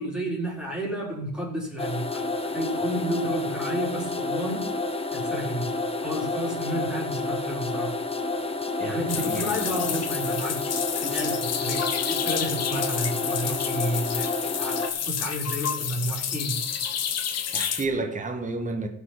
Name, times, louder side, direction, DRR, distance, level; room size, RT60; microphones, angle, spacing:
voice 1, 0.0-2.3 2.5-4.7 5.1-5.7 6.0-8.0 8.8-16.6, right 1 dB, 5° right, 4.0 m, -31 dB
sound 1, 1.8-14.9, left 3 dB, 20° left, 1.2 m, -30 dB
voice 2, 8.8-9.7 17.5-18.9, right 3 dB, 25° right, 1.6 m, -31 dB
sound 2, 9.1-17.8, left 8 dB, 55° left, 1.2 m, -30 dB
15.5 x 5.7 x 5.9 m
cardioid pair, 90°, 30 cm